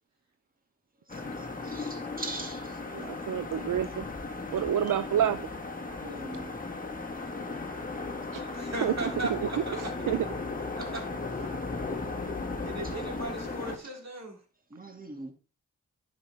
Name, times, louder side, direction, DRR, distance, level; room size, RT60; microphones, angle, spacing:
sound 1, 1.1-13.8, left 3 dB, 25° left, 1.6 m, -36 dB
voice 1, 1.6-2.8 4.8-5.0 6.0-6.6 12.8-13.0 13.8-14.0 14.7-15.3, right 2 dB, 25° right, 2.3 m, -42 dB
voice 2, 2.9-4.0 4.5-5.4 8.3-8.5 8.8-8.9 9.3-10.3, right 10 dB, 75° right, 0.5 m, -28 dB
voice 3, 8.5-9.8 10.8-11.0 12.6-14.4, right 2 dB, 55° right, 3.2 m, -37 dB
9.9 x 6.0 x 3.5 m
cardioid pair, 50°, 32 cm